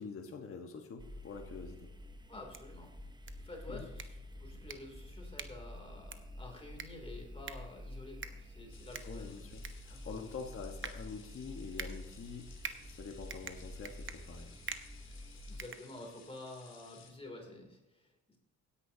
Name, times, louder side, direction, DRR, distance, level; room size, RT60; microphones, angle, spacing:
voice 1, 0.0-1.9 3.7-3.9 9.0-12.5 12.8-14.6, left 5 dB, 45° left, 2 dB, 1.3 m, -46 dB
sound 1, 1.0-15.6, left 1 dB, 15° right, 0.9 m, -49 dB
voice 2, 2.3-2.9 3.4-4.1 4.4-9.4 9.9-10.2 15.5-18.1, left 2 dB, 20° left, 1 dB, 3.0 m, -50 dB
sound 2, 2.3-16.4, right 6 dB, 40° right, 1.0 m, -49 dB
sound 3, 8.7-17.1, left 7 dB, 65° left, 2.0 m, -59 dB
17.0 x 10.0 x 2.8 m, 1.0 s
cardioid pair, 90°, 30 cm